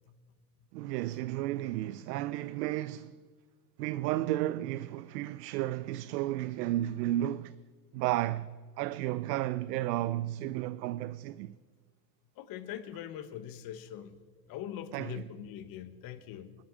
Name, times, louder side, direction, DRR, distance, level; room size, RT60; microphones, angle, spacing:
voice 1, 0.7-3.1 3.8-7.6 7.9-11.5 14.9-15.3, right 14 dB, 80° right, 0.6 m, -33 dB
voice 2, 12.4-14.2 14.5-16.5, left 10 dB, 45° left, 1.3 m, -42 dB
19.5 x 13.0 x 5.0 m
supercardioid pair, 120°, 48 cm